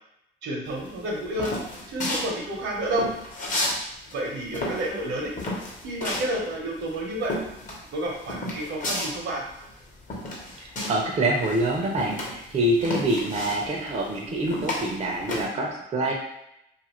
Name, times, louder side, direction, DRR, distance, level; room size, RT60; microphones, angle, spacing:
voice 1, 0.4-1.5 1.9-3.1 4.1-5.3 5.8-7.3 7.9-9.4, right 1 dB, 70° right, -1 dB, 0.8 m, -30 dB
sound 1, 0.8-3.8 4.1-11.1 11.4-15.4, left 1 dB, 40° left, 0.9 m, -32 dB
voice 2, 10.6-16.1, right 1 dB, 35° right, -1 dB, 0.5 m, -26 dB
2.6 x 2.5 x 3.0 m, 0.82 s
cardioid pair, 90°, 20 cm